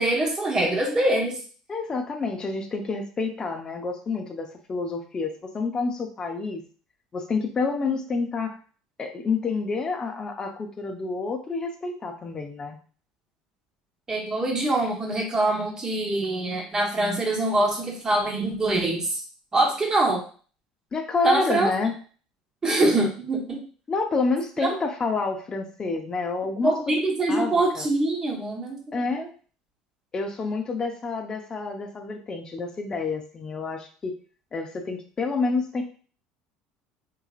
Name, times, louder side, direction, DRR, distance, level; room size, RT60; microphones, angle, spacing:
voice 1, 0.0-1.4 14.1-19.2 19.5-20.2 21.2-21.7 22.6-23.6 26.6-29.3, right 2 dB, 25° right, 0 dB, 1.3 m, -24 dB
voice 2, 1.7-6.6 7.1-8.6 9.0-12.8 20.9-21.9 23.9-26.7 27.3-27.9 28.9-29.3 30.1-34.2 34.5-35.8, left 4 dB, 30° left, 4 dB, 0.7 m, -28 dB
3.7 x 3.0 x 2.4 m, 0.41 s
supercardioid pair, 85°, 3 cm